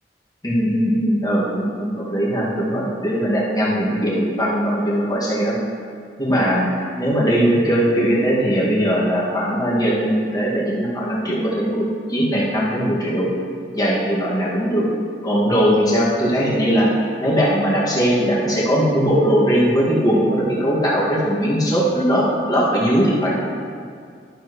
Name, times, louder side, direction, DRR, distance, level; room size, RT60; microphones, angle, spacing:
voice 1, 0.4-5.6 6.2-6.6 7.0-13.3 13.7-14.8 15.2-16.9 17.2-23.3, equal, 25° left, -7 dB, 2.0 m, -19 dB
12.0 x 7.5 x 3.1 m, 2.2 s
head